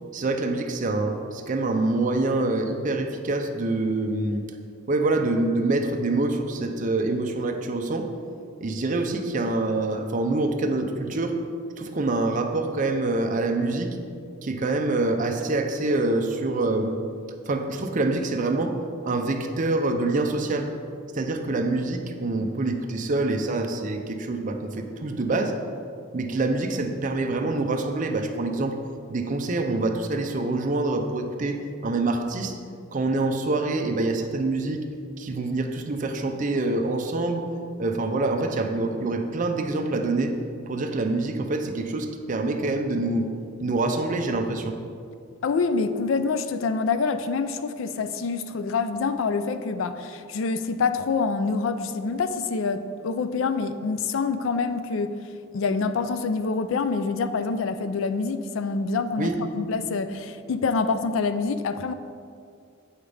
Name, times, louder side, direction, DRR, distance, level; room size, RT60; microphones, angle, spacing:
voice 1, 0.1-4.4 4.9-8.1 8.6-11.4 11.8-14.0 14.4-17.0 17.4-18.8 19.0-20.7 21.1-25.6 26.1-28.8 29.1-32.6 32.9-34.8 35.2-37.5 37.8-40.3 40.7-43.3 43.6-44.8 59.2-59.4, right 2 dB, 40° right, 5 dB, 0.5 m, -26 dB
voice 2, 45.4-55.1 55.5-61.9, left 4 dB, 70° left, 10 dB, 0.4 m, -26 dB
7.9 x 5.5 x 3.4 m, 2.4 s
head